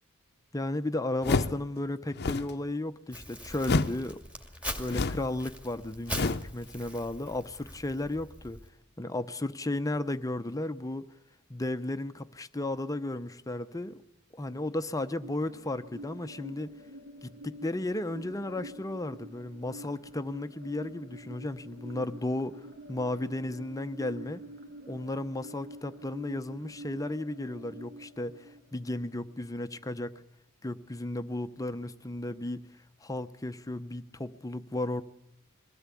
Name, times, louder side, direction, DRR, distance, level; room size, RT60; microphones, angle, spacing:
voice 1, 0.5-4.2 4.8-8.6 9.0-11.1 11.5-14.0 14.3-16.7 17.2-24.4 24.9-30.1 30.6-32.7 33.0-35.0, left 1 dB, 15° left, 0.7 m, -34 dB
sound 1, 1.2-1.7 2.1-2.6 3.6-4.0 4.9-5.3 6.1-6.5, left 3 dB, 50° left, 0.8 m, -28 dB
Crumpling crinkling, 3.1-8.7, equal, 5° right, 2.2 m, -42 dB
sound 2, 14.4-29.4, equal, 60° right, 3.3 m, -47 dB
22.5 x 16.5 x 8.4 m
head